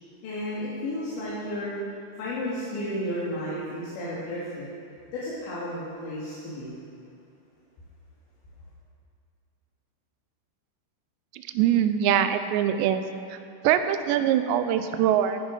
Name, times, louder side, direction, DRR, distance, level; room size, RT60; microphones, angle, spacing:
voice 1, 0.2-1.7 2.2-4.7 5.1-6.8, left 1 dB, 90° left, -8 dB, 4.7 m, -32 dB
voice 2, 11.5-13.0 13.3-13.4 13.6-15.4, right 10 dB, 85° right, 9 dB, 2.9 m, -23 dB
14.5 x 9.8 x 5.3 m, 2.7 s
omnidirectional pair, 5.0 m